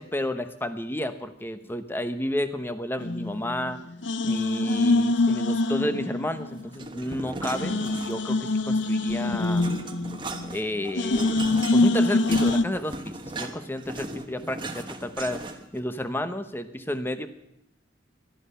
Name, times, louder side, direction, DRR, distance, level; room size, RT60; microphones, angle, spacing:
voice 1, 0.0-3.8 4.2-9.7 10.5-11.4 11.7-15.4 15.7-17.3, left 1 dB, 10° left, 10 dB, 0.9 m, -31 dB
sound 1, 3.0-3.7 4.0-6.6 6.9-7.0 7.5-10.6 11.0-12.6, left 2 dB, 80° left, 0.7 m, -24 dB
sound 2, 6.7-8.4 8.8-15.8, right 2 dB, 25° right, 1.2 m, -37 dB
19.5 x 12.5 x 5.7 m, 0.81 s
head